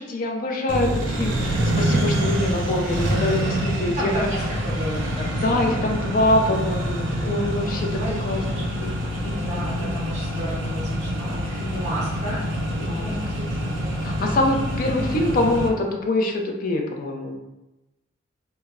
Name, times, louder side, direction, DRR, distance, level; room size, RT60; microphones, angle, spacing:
voice 1, 0.0-4.1 5.4-10.0 11.6-12.0 12.8-13.1 14.0-17.4, left 2 dB, 45° left, 2 dB, 0.4 m, -25 dB
Accelerating revving vroom, 0.7-15.7, equal, 80° right, 0.5 m, -26 dB
voice 2, 3.9-5.9 7.7-12.4 12.7-14.3, right 1 dB, 35° right, -5 dB, 0.6 m, -33 dB
2.1 x 2.0 x 3.5 m, 1.0 s
head